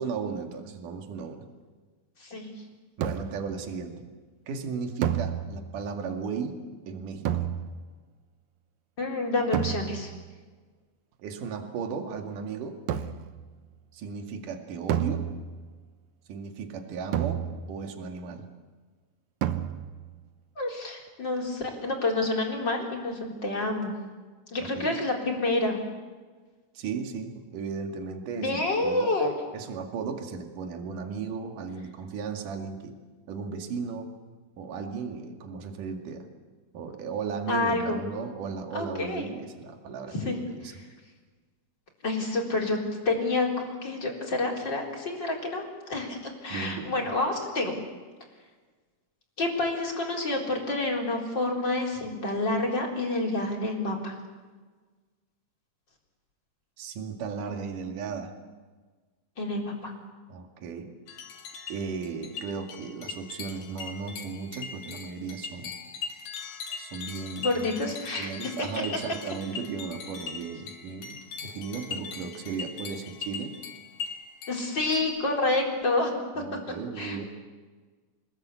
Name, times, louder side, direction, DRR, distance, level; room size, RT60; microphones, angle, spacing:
voice 1, 0.0-1.5 3.0-4.0 4.5-6.6 6.9-7.3 11.2-12.8 13.9-15.3 16.3-18.5 24.6-24.9 26.8-29.1 29.5-33.0 33.3-34.1 34.6-36.3 36.7-40.7 46.5-47.1 56.8-58.3 60.3-60.9 61.7-65.7 66.8-67.7 68.2-73.6 76.4-77.3, right 5 dB, 55° right, 4 dB, 3.5 m, -35 dB
sound 1, 3.0-3.6 5.0-5.9 7.2-8.0 9.5-10.2 12.9-13.4 14.9-15.8 17.1-17.9 19.4-20.1, right 10 dB, 80° right, 1.6 m, -31 dB
voice 2, 9.0-10.1 20.6-23.9 24.5-25.8 28.4-29.3 37.5-38.0 38.7-39.3 40.1-40.4 42.0-42.8 43.0-47.7 49.4-54.2 59.4-59.9 67.4-68.7 74.5-77.3, left 2 dB, 25° left, 0 dB, 4.2 m, -28 dB
sound 2, 61.1-75.0, left 6 dB, 65° left, 3.8 m, -40 dB
27.0 x 20.5 x 8.3 m, 1.4 s
omnidirectional pair, 4.8 m